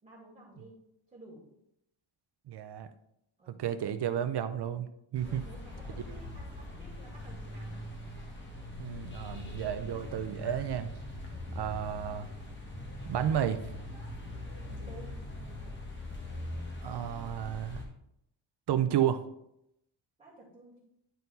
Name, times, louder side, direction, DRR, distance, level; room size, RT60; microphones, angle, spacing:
voice 1, 0.0-0.8 1.1-1.4 3.4-3.8 5.2-7.7 11.3-11.5 14.7-15.2 20.2-20.8, right 2 dB, 15° right, -7 dB, 2.3 m, -53 dB
voice 2, 2.5-2.9 3.5-5.4 8.8-10.9 11.5-12.3 13.0-13.6 16.8-17.8 18.7-19.2, right 10 dB, 55° right, 11 dB, 0.6 m, -32 dB
sound 1, 5.1-17.8, left 1 dB, 25° left, 1.5 m, -42 dB
10.5 x 4.5 x 4.0 m, 0.80 s
wide cardioid pair, 175°, 48 cm